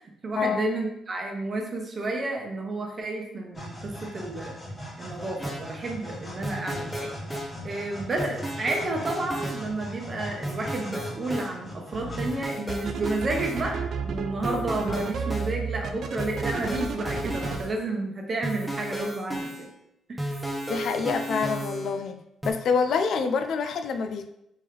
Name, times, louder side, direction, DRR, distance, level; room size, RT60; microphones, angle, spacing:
voice 1, 0.0-4.5 5.0-7.1 7.6-19.7 20.1-20.3, right 2 dB, 40° right, 1 dB, 0.9 m, -31 dB
sound 1, 3.5-12.8, equal, 25° left, 1.2 m, -40 dB
sound 2, 5.4-5.6 6.4-7.5 8.2-9.6 10.4-11.5 12.2-13.6 14.4-15.5 16.2-17.7 18.4-19.7 20.2-22.1 22.4-22.5, right 1 dB, ahead, 0.8 m, -33 dB
sound 3, 11.9-12.3 12.7-17.6, right 5 dB, 65° right, 0.4 m, -32 dB
voice 2, 20.7-22.2 22.4-24.3, left 5 dB, 65° left, 8 dB, 0.4 m, -26 dB
3.5 x 3.1 x 3.3 m, 0.81 s
cardioid pair, 90°, 0 cm